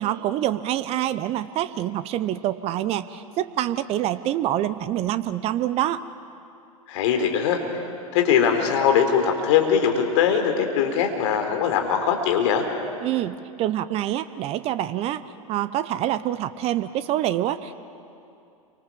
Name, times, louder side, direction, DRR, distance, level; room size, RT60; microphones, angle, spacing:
voice 1, 0.0-6.0 13.0-15.2 15.5-17.8, right 12 dB, 35° right, 14 dB, 0.9 m, -26 dB
voice 2, 6.9-7.6 8.1-12.7, left 7 dB, 55° left, 4 dB, 4.1 m, -21 dB
29.5 x 25.0 x 7.5 m, 2.7 s
figure-of-eight pair, 95°, 19 cm